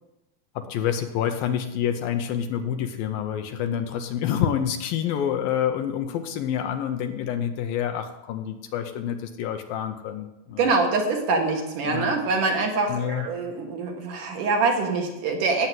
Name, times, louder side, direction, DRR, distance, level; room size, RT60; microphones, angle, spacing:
voice 1, 0.6-10.7 11.8-12.1 12.9-13.3, left 9 dB, 75° left, 7 dB, 2.4 m, -27 dB
voice 2, 10.6-15.7, right 3 dB, 60° right, 2 dB, 3.0 m, -24 dB
17.5 x 8.0 x 7.6 m, 0.96 s
omnidirectional pair, 4.6 m